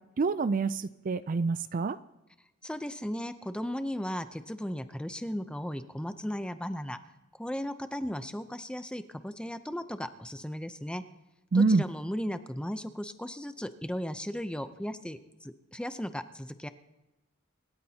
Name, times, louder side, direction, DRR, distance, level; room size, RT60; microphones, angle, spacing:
voice 1, 0.2-2.0 11.5-11.8, right 4 dB, 40° right, 14 dB, 0.4 m, -26 dB
voice 2, 2.6-7.0 7.4-11.0 11.5-16.7, equal, 5° left, 10 dB, 0.6 m, -36 dB
26.5 x 13.0 x 2.9 m, 1.0 s
head